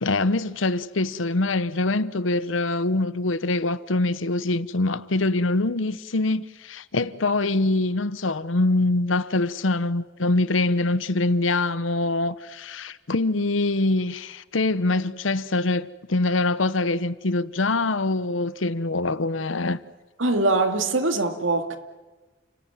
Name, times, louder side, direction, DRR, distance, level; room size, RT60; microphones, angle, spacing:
voice 1, 0.0-19.8, left 2 dB, 85° left, 1.0 m, -24 dB
voice 2, 20.2-21.8, right 2 dB, 90° right, 2.2 m, -22 dB
29.5 x 17.0 x 9.3 m
head